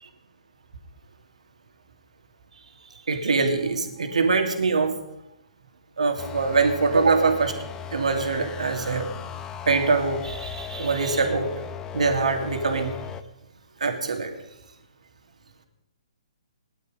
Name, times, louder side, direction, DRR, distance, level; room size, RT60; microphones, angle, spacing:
voice 1, 3.1-4.9 6.0-7.5 7.9-9.1 9.7-11.5 11.9-13.0 13.8-14.3, right 4 dB, 70° right, 4 dB, 2.7 m, -23 dB
sound 1, 6.2-13.2, left 8 dB, 15° left, 0.7 m, -37 dB
18.0 x 11.5 x 5.3 m, 0.89 s
figure-of-eight pair, 135°, 4 cm